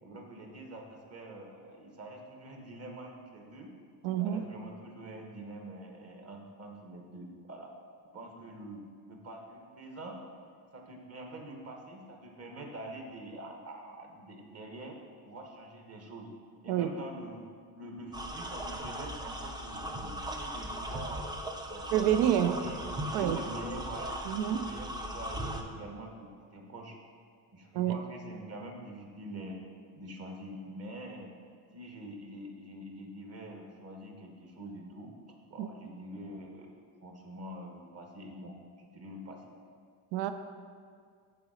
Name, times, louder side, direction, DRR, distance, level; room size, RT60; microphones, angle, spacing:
voice 1, 0.0-3.7 4.2-7.7 8.1-8.8 9.1-10.2 10.7-15.0 15.2-16.3 16.6-17.5 17.7-24.2 24.5-27.0 27.5-29.6 30.0-31.3 31.7-35.1 35.5-39.4, right 1 dB, 35° right, 2 dB, 1.2 m, -45 dB
voice 2, 4.0-4.4 16.7-16.9 21.9-22.5 23.1-23.4 24.3-24.7 27.7-28.0 35.6-35.7 40.1-40.3, right 10 dB, 75° right, 9 dB, 0.5 m, -27 dB
sound 1, 18.1-25.6, equal, 10° right, 0.5 m, -38 dB
6.9 x 4.0 x 5.0 m, 2.1 s
cardioid pair, 105°, 43 cm